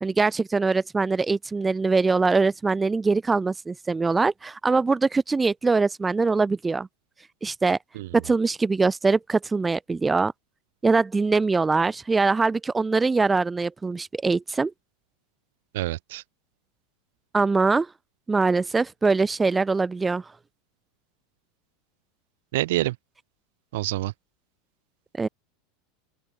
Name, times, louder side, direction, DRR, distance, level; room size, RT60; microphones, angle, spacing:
voice 1, 0.0-6.9 7.4-7.8 8.1-10.3 10.8-14.7 17.3-17.9 18.3-20.2 25.2-25.3, right 4 dB, 10° right, 0.8 m, -22 dB
voice 2, 15.7-16.2 22.5-23.0 23.7-24.1, right 17 dB, 75° right, 2.9 m, -26 dB
open air
supercardioid pair, 155°, 0 cm